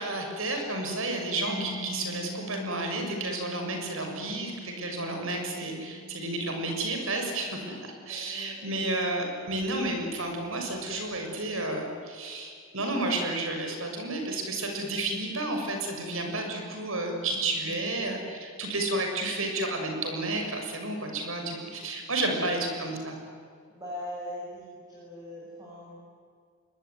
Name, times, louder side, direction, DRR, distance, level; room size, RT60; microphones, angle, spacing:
voice 1, 0.0-7.8 8.1-23.2, right 2 dB, 65° right, 3 dB, 6.6 m, -31 dB
Mallet percussion, 1.5-9.0, left 1 dB, 40° left, 3.4 m, -44 dB
voice 2, 8.0-8.8 16.2-16.6 17.6-17.9 18.9-19.1 21.2-22.6 23.7-26.0, equal, 15° right, -6 dB, 7.3 m, -43 dB
26.0 x 22.0 x 9.7 m, 2.2 s
head